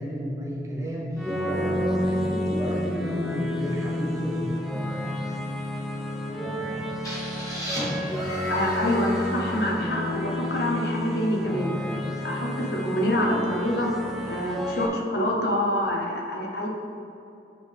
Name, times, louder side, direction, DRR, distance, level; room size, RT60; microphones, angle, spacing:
voice 1, 0.0-4.5, equal, 15° right, -4 dB, 0.9 m, -31 dB
sound 1, 1.2-14.9, left 1 dB, ahead, 0.5 m, -30 dB
sound 2, 7.0-10.8, equal, 20° left, 1.3 m, -34 dB
voice 2, 8.5-11.7 12.2-13.9 14.3-16.7, left 1 dB, 65° left, -2 dB, 1.0 m, -26 dB
9.5 x 3.6 x 3.6 m, 2.8 s
head